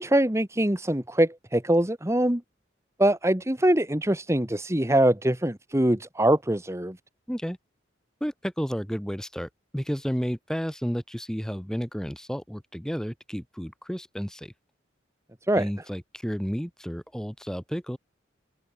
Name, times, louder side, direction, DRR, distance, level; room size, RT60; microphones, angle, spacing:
voice 1, 0.0-2.4 3.0-7.0 15.5-15.7, right 1 dB, 15° right, 1.6 m, -23 dB
voice 2, 8.2-14.5 15.5-18.0, equal, 5° left, 2.7 m, -32 dB
head